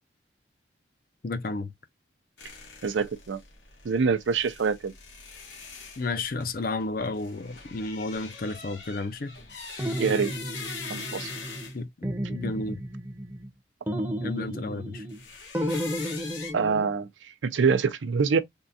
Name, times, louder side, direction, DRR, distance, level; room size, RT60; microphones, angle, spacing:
voice 1, 1.2-1.7 6.0-9.3 11.7-11.9 12.3-12.8 14.2-15.0, left 3 dB, 50° left, 0.5 m, -32 dB
sound 1, 2.4-11.8 15.1-16.5, left 5 dB, 75° left, 1.2 m, -42 dB
voice 2, 2.8-3.4 3.8-4.9 10.0-10.3 10.9-11.3 16.5-18.4, right 5 dB, 85° right, 0.5 m, -25 dB
sound 2, 9.8-11.7 12.0-13.5 13.9-15.2 15.5-16.9, equal, 10° right, 0.6 m, -33 dB
3.6 x 2.3 x 2.6 m
head